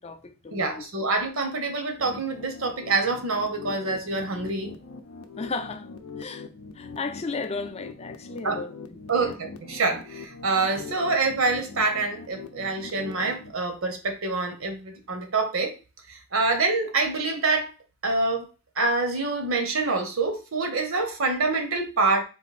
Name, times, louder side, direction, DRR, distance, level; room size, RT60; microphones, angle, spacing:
voice 1, 0.0-1.1 5.4-5.9 6.2-6.5 6.7-9.4, left 4 dB, 30° left, 0.5 m, -35 dB
voice 2, 0.5-4.7 8.4-8.6 9.1-15.7 16.1-17.7 18.0-18.4 18.8-22.2, right 3 dB, 65° right, 1.0 m, -26 dB
sound 1, 2.0-13.5, left 4 dB, 90° left, 0.6 m, -42 dB
4.0 x 2.6 x 4.1 m
head